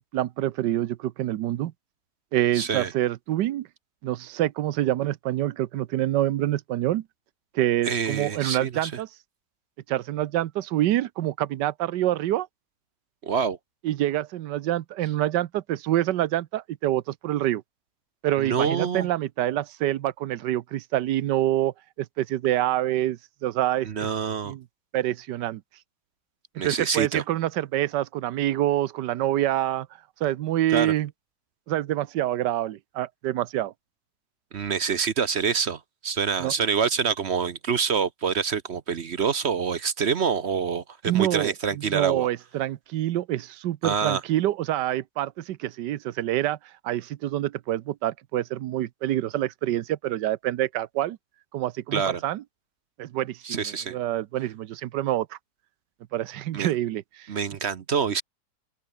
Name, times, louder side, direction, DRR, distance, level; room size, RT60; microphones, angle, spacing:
voice 1, 0.0-1.7 2.3-3.7 4.0-7.0 7.5-9.1 9.9-12.5 13.8-17.6 18.2-23.9 24.4-24.6 24.9-25.6 26.6-29.9 30.2-31.1 31.7-33.7 36.4-36.5 41.1-46.6 46.8-51.2 51.5-52.4 53.0-55.4 56.1-57.3, right 13 dB, 85° right, 1.4 m, -26 dB
voice 2, 2.5-2.9 7.9-8.9 13.2-13.6 18.4-19.1 23.8-24.5 26.6-27.2 30.7-30.9 34.5-42.3 43.8-44.2 51.9-52.2 53.4-54.0 56.5-56.7 57.3-58.2, right 6 dB, 50° right, 0.9 m, -26 dB
open air
omnidirectional pair, 1.8 m